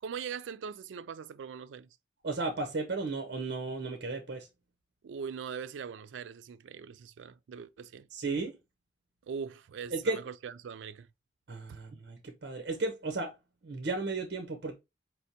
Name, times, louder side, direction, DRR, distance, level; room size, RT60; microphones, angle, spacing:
voice 1, 0.0-1.9 5.0-8.1 9.3-11.1 11.7-11.8, right 6 dB, 90° right, 0.4 m, -41 dB
voice 2, 2.2-4.5 8.1-8.5 9.9-10.2 11.5-13.3 13.6-14.7, right 3 dB, 60° right, 0.7 m, -34 dB
4.3 x 3.3 x 2.8 m
head